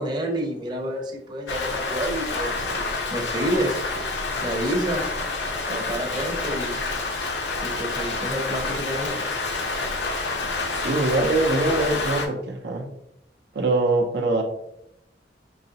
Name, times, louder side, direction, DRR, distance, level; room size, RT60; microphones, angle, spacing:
voice 1, 0.0-2.6 3.1-3.8 4.4-5.1 5.7-6.8 7.6-9.2, right 1 dB, 25° right, 1 dB, 0.7 m, -28 dB
Rain, 1.5-12.3, left 3 dB, 75° left, 0.7 m, -28 dB
voice 2, 10.8-12.9 13.5-14.4, right 2 dB, 65° right, 3 dB, 0.5 m, -23 dB
4.7 x 3.0 x 2.7 m, 0.79 s
head